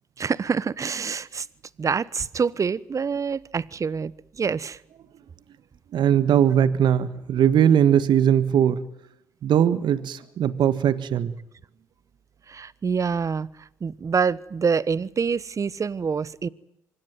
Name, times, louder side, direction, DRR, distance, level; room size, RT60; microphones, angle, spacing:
voice 1, 0.2-1.5 1.8-4.1 4.4-4.8 12.5-13.5 13.8-16.5, right 5 dB, 35° right, 1.2 m, -26 dB
voice 2, 5.9-8.8 9.4-11.3, right 9 dB, 60° right, 1.7 m, -20 dB
25.5 x 21.0 x 9.3 m
hypercardioid pair, 55°, 9 cm